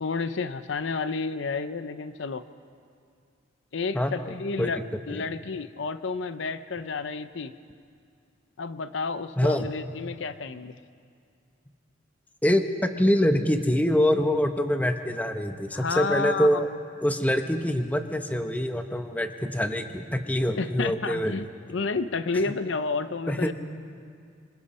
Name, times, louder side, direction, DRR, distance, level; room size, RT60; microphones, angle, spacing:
voice 1, 0.0-2.4 3.7-7.5 8.6-10.8 15.7-16.6 20.6-23.5, left 4 dB, 65° left, 12 dB, 0.6 m, -31 dB
voice 2, 9.4-9.7 12.4-16.7 17.0-21.4 23.3-23.5, equal, 10° left, 6 dB, 0.9 m, -25 dB
27.0 x 25.5 x 4.3 m, 2.3 s
head